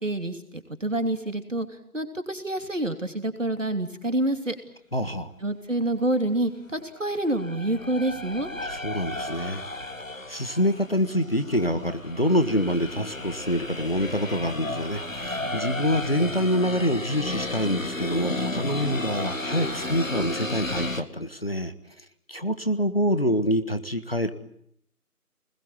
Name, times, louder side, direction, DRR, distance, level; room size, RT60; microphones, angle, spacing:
voice 1, 0.0-1.7 1.9-4.5 5.4-8.5, right 1 dB, 50° right, 7 dB, 3.2 m, -27 dB
voice 2, 4.9-5.3 8.5-9.6 10.3-21.7 22.3-24.3, equal, 40° left, 10 dB, 1.5 m, -26 dB
sound 1, 7.0-21.0, left 2 dB, 55° left, 2.0 m, -33 dB
26.0 x 21.0 x 9.1 m, 0.70 s
figure-of-eight pair, 170°, 46 cm